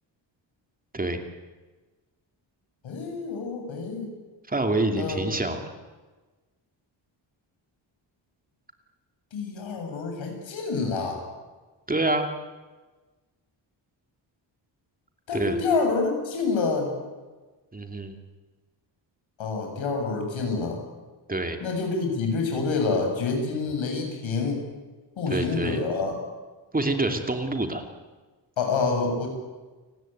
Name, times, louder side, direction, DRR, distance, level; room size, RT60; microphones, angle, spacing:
voice 1, 2.8-4.1 4.9-5.4 9.3-11.2 15.3-16.9 19.4-20.8 21.6-24.6 25.2-26.1 28.6-29.3, left 4 dB, 85° left, 3 dB, 8.0 m, -27 dB
voice 2, 4.5-5.6 11.9-12.3 15.3-15.6 17.7-18.1 21.3-21.6 25.3-25.8 26.7-27.9, right 2 dB, 20° right, 5 dB, 2.6 m, -26 dB
29.5 x 19.0 x 9.3 m, 1.3 s
wide cardioid pair, 135°, 46 cm